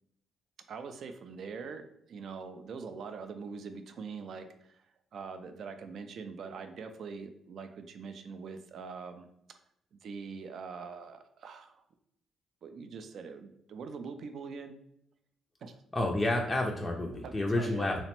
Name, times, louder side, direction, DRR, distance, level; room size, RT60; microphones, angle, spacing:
voice 1, 0.7-4.8 5.1-9.3 9.9-11.8 12.6-14.8 15.6-15.8 17.2-17.9, right 5 dB, 65° right, 8 dB, 0.3 m, -43 dB
voice 2, 15.9-18.0, left 1 dB, 15° left, -1 dB, 0.4 m, -29 dB
2.9 x 2.1 x 2.9 m, 0.76 s
cardioid pair, 90°, 0 cm